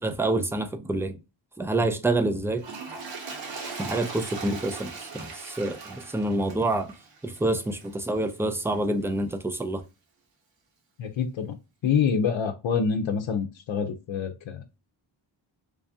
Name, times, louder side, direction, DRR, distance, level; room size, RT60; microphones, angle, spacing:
voice 1, 0.0-1.2 1.6-2.6 3.8-6.9 7.2-9.8, right 2 dB, 5° right, 0.3 m, -27 dB
Toilet flush, 2.5-8.0 8.7-8.8, right 4 dB, 65° right, 1.1 m, -40 dB
voice 2, 11.0-11.5 11.8-14.6, left 6 dB, 75° left, 0.6 m, -26 dB
3.3 x 2.6 x 3.3 m
wide cardioid pair, 150°, 47 cm